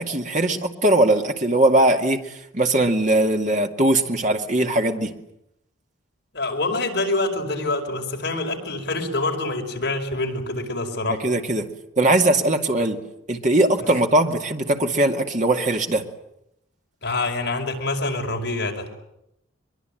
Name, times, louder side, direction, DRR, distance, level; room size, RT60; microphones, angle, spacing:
voice 1, 0.0-5.1 11.2-11.7 12.0-13.0 13.3-16.1, right 1 dB, 35° right, 4 dB, 2.3 m, -20 dB
voice 2, 6.3-11.2 13.8-13.9 17.0-18.9, left 2 dB, 55° left, 2 dB, 5.3 m, -26 dB
23.5 x 23.0 x 9.2 m, 0.82 s
head